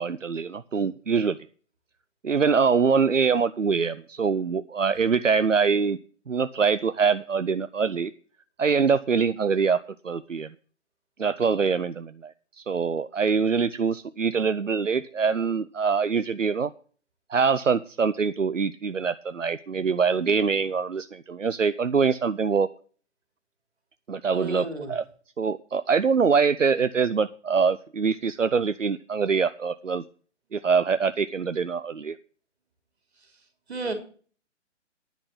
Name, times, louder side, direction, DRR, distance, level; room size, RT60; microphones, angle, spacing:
voice 1, 0.0-1.4 2.2-6.0 6.3-8.1 8.6-10.5 11.2-16.7 17.3-22.7 24.1-25.0 25.4-30.0 30.5-32.2, right 5 dB, 90° right, 13 dB, 0.7 m, -24 dB
voice 2, 24.3-24.9 33.7-33.9, right 3 dB, 60° right, 6 dB, 3.3 m, -32 dB
10.5 x 6.0 x 8.6 m, 0.41 s
figure-of-eight pair, 135°, 36 cm